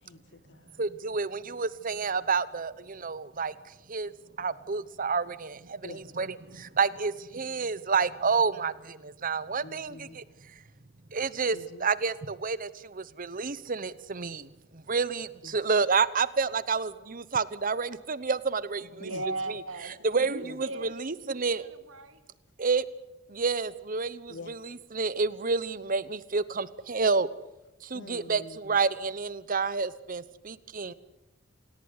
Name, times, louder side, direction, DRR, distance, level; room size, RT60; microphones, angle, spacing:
voice 1, 0.0-0.8 5.8-6.1 9.6-10.2 11.5-11.9 15.4-15.6 19.1-19.2 20.4-20.6 24.3-24.6 27.9-28.8 30.9-31.0, left 2 dB, 60° left, 13 dB, 1.8 m, -46 dB
voice 2, 0.8-3.5 3.9-4.1 4.4-10.2 11.1-19.1 20.0-21.6 22.6-22.8 23.3-27.3 27.8-30.9, right 4 dB, 40° right, 17 dB, 0.9 m, -29 dB
voice 3, 18.8-22.2, right 2 dB, 80° right, 9 dB, 2.6 m, -38 dB
27.0 x 17.5 x 9.7 m, 0.95 s
head